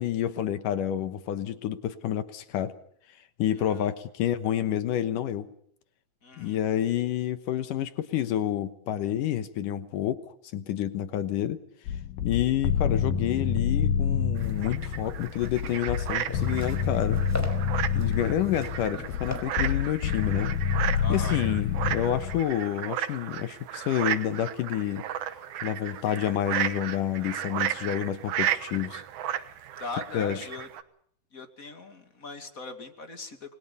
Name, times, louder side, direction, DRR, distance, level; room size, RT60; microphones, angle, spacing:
voice 1, 0.0-2.7 3.4-5.5 6.4-11.6 12.2-17.2 17.9-20.5 21.1-25.1 25.6-29.0 30.1-30.4, left 11 dB, 75° left, 11 dB, 2.7 m, -29 dB
voice 2, 6.2-6.6 20.9-21.4 29.8-30.7 31.3-33.5, left 3 dB, 30° left, 7 dB, 2.3 m, -40 dB
sound 1, 11.9-22.4, left 7 dB, 90° left, 3.2 m, -28 dB
sound 2, 14.4-30.8, right 11 dB, 70° right, 2.5 m, -34 dB
sound 3, 15.0-21.1, equal, 5° left, 4.7 m, -42 dB
28.5 x 21.5 x 5.5 m, 0.64 s
omnidirectional pair, 3.9 m